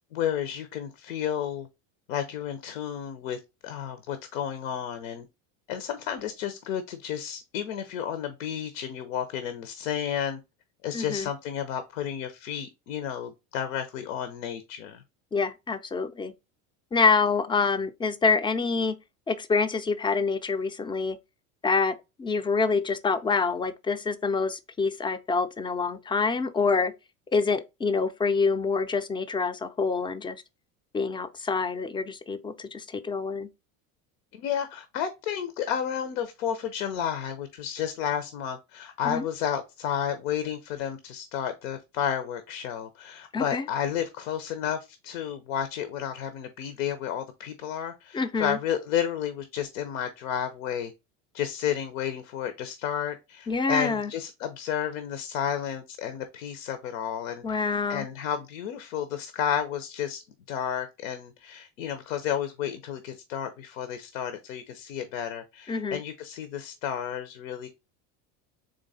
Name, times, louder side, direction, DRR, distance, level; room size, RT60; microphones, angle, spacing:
voice 1, 0.1-1.7 2.1-5.2 5.7-10.4 10.8-15.0 34.3-50.9 51.3-57.4 57.9-60.2 60.5-67.7, left 9 dB, 90° left, 0.7 m, -32 dB
voice 2, 10.9-11.3 15.3-16.3 16.9-19.0 19.3-21.2 21.6-26.9 27.3-30.4 30.9-33.5 39.0-39.3 43.3-43.7 48.1-48.6 53.5-54.1 57.4-58.1 65.7-66.0, left 4 dB, 15° left, 0.3 m, -26 dB
3.8 x 3.2 x 4.0 m
supercardioid pair, 105°, 39 cm